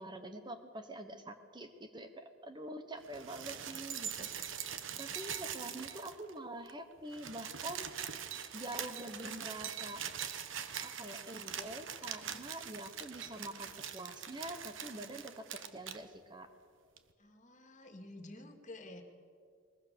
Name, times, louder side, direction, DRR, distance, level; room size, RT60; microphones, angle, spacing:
voice 1, 0.0-4.5 5.0-7.9 8.5-10.0 10.8-16.5, right 1 dB, 25° right, 8 dB, 1.2 m, -46 dB
sound 1, 3.0-6.4 6.7-6.8 7.0-16.0 17.0-17.1, right 8 dB, 70° right, 1.2 m, -43 dB
voice 2, 17.2-19.0, left 2 dB, 40° left, 5 dB, 2.4 m, -51 dB
21.5 x 21.5 x 7.0 m, 2.2 s
head